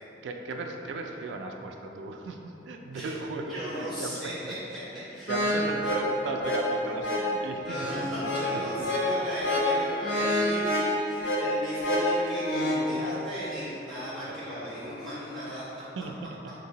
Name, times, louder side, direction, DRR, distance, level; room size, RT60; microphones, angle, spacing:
voice 1, 0.2-4.5 4.9-8.9 12.0-12.1 14.3-14.4 14.8-14.9 15.5-16.4, right 3 dB, 85° right, 4 dB, 0.3 m, -37 dB
voice 2, 3.5-4.8 5.1-5.7 7.7-15.6, equal, ahead, -16 dB, 1.4 m, -36 dB
sound 1, 5.3-12.9, left 1 dB, 80° left, 0.5 m, -28 dB
3.2 x 2.8 x 2.8 m, 3.0 s
head